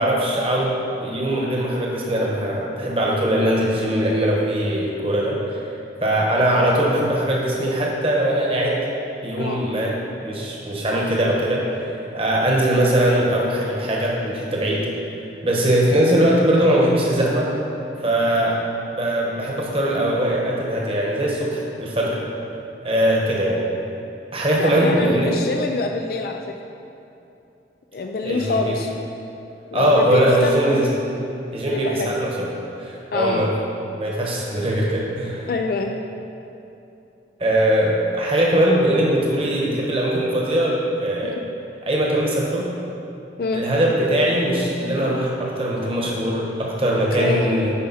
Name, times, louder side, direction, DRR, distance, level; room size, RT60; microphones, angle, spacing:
voice 1, 0.0-5.6 6.0-8.8 9.2-14.9 15.4-17.5 18.0-18.6 18.9-22.2 22.8-23.6 24.3-25.4 28.2-28.7 29.7-30.9 31.5-32.5 32.8-33.5 33.8-35.5 37.4-41.3 41.9-42.7 43.5-47.7, right 1 dB, 30° right, -3 dB, 1.2 m, -21 dB
voice 2, 24.6-26.4 27.9-28.9 29.7-30.8 31.7-32.1 33.1-33.5 35.5-36.0 41.2-41.4 43.4-43.6 47.1-47.5, left 3 dB, 55° left, 3 dB, 0.4 m, -26 dB
9.5 x 5.3 x 4.2 m, 2.8 s
head